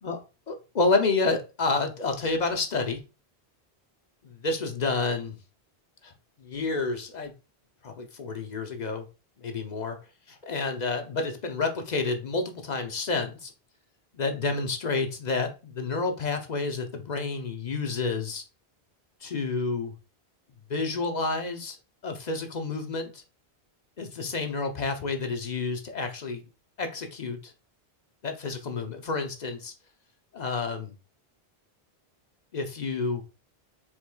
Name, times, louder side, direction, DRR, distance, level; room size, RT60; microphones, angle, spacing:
voice 1, 0.5-3.0 4.2-5.4 6.0-6.1 6.4-7.3 7.8-9.1 9.4-10.0 10.3-13.5 14.1-18.4 19.2-19.9 20.7-21.8 22.0-23.2 24.0-26.5 26.8-27.5 28.2-29.7 30.3-31.0 32.5-33.2, left 3 dB, 50° left, 5 dB, 0.7 m, -29 dB
4.7 x 3.5 x 2.2 m, 0.30 s
omnidirectional pair, 1.1 m